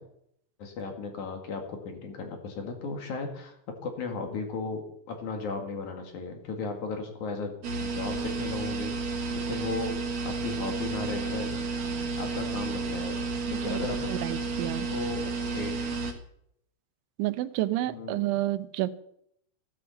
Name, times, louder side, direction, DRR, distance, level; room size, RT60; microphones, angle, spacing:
voice 1, 0.6-3.6 3.8-7.5 7.8-10.0 10.2-11.5 12.2-13.2 13.5-14.1 14.9-16.1 17.8-18.4, left 4 dB, 50° left, 4 dB, 2.7 m, -36 dB
sound 1, 7.6-16.1, right 4 dB, 55° right, 2.2 m, -32 dB
voice 2, 13.5-13.8 14.1-14.9 17.2-19.0, right 15 dB, 85° right, 13 dB, 3.2 m, -30 dB
16.0 x 9.4 x 7.0 m, 0.72 s
omnidirectional pair, 5.3 m